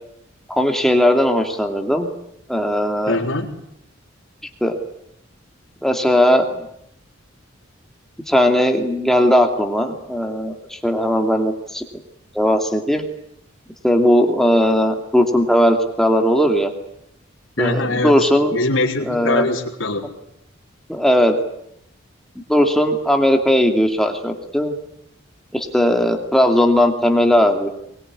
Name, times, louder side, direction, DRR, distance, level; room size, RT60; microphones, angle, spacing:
voice 1, 0.5-2.1 2.5-3.2 4.6-4.8 5.8-6.6 8.3-11.8 12.3-13.0 13.8-16.7 17.6-18.6 19.0-19.5 20.9-21.4 22.5-24.7 25.5-27.7, equal, ahead, 3 dB, 2.6 m, -17 dB
voice 2, 3.1-3.5 17.6-20.1, left 2 dB, 80° left, -1 dB, 4.1 m, -22 dB
23.5 x 21.5 x 9.9 m, 0.76 s
head